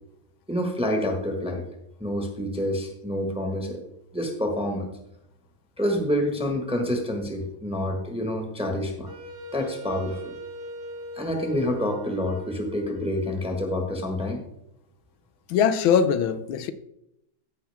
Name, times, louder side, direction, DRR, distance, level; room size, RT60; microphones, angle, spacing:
voice 1, 0.5-1.6 2.0-3.8 4.1-4.9 5.8-9.1 9.5-10.3 11.1-14.4, left 1 dB, 5° right, 3 dB, 1.1 m, -27 dB
Wind instrument woodwind instrument, 9.0-14.0, equal, 45° right, 0.9 m, -41 dB
voice 2, 15.5-16.7, left 7 dB, 85° left, 12 dB, 1.5 m, -21 dB
15.0 x 5.8 x 3.5 m, 0.80 s
omnidirectional pair, 2.2 m